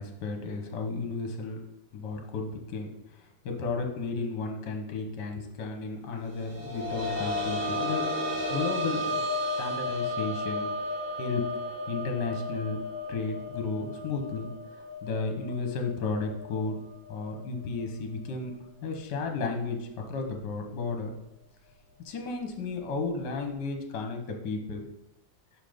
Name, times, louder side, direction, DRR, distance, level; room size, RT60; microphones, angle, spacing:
voice 1, 0.0-1.6 1.9-8.1 8.5-9.2 9.6-10.7 11.2-11.5 11.9-12.8 13.1-14.5 15.0-16.8 17.1-18.5 18.8-21.1 22.0-24.8, left 4 dB, 65° left, 4 dB, 1.6 m, -33 dB
sound 1, 6.4-17.8 18.2-18.3 19.8-19.9, left 1 dB, 90° right, 2.3 m, -34 dB
5.8 x 5.7 x 5.1 m, 0.83 s
omnidirectional pair, 2.1 m